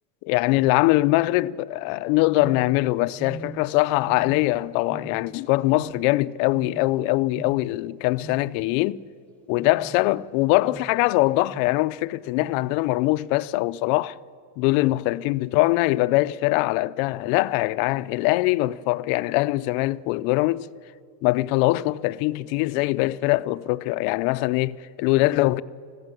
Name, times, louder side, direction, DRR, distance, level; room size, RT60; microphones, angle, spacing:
voice 1, 0.2-9.0 9.5-14.2 14.6-20.7 21.2-25.6, left 19 dB, 65° left, 0.6 m, -22 dB
sound 1, 2.4-2.9 3.2-3.8 4.0-4.6 4.9-5.4 5.7-6.2 6.5-7.0 7.3-7.7 8.2-8.6 9.5-10.1 10.6-11.0 11.5-11.8 12.4-12.7, right 3 dB, 5° left, 1.1 m, -41 dB
20.5 x 15.5 x 9.1 m
cardioid pair, 160°, 43 cm